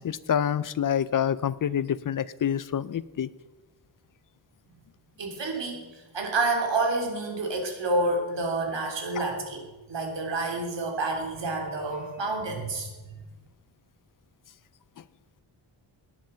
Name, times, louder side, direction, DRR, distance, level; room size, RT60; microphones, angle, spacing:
voice 1, 0.0-3.3, left 9 dB, 45° left, 18 dB, 0.5 m, -27 dB
voice 2, 5.2-12.9, right 2 dB, 65° right, 3 dB, 3.4 m, -29 dB
18.0 x 10.5 x 5.7 m, 1.2 s
wide cardioid pair, 175°, 47 cm